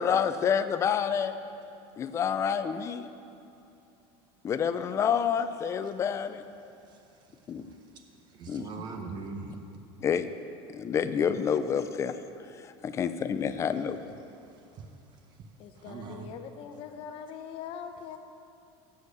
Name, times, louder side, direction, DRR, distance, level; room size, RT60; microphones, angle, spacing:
voice 1, 0.0-1.3 2.0-3.1 4.4-6.4 7.5-7.6 8.5-8.7 10.0-10.3 10.7-12.1 12.8-14.0, left 7 dB, 25° left, 11 dB, 0.4 m, -28 dB
voice 2, 6.9-8.0 8.3-9.6 14.4-15.4 15.7-16.3, right 4 dB, 35° right, 4 dB, 0.7 m, -43 dB
voice 3, 15.6-18.2, left 7 dB, 45° left, 7 dB, 0.7 m, -42 dB
7.5 x 6.5 x 8.1 m, 2.7 s
cardioid pair, 155°, 13 cm